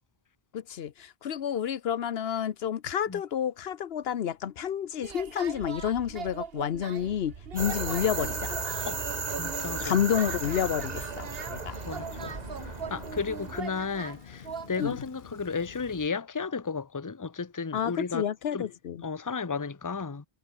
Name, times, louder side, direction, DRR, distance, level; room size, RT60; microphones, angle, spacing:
voice 1, 0.5-8.6 9.8-11.8 14.8-15.0 17.7-19.0, left 9 dB, 75° left, 1.0 m, -30 dB
sound 1, 5.0-14.9, right 6 dB, 75° right, 1.4 m, -41 dB
sound 2, 7.6-13.6, right 4 dB, 45° right, 1.4 m, -35 dB
voice 2, 9.3-9.9 11.9-18.3 18.5-18.7 19.0-20.2, left 5 dB, 20° left, 0.8 m, -34 dB
Rain, 10.2-16.1, left 7 dB, 55° left, 1.0 m, -48 dB
omnidirectional pair, 1.0 m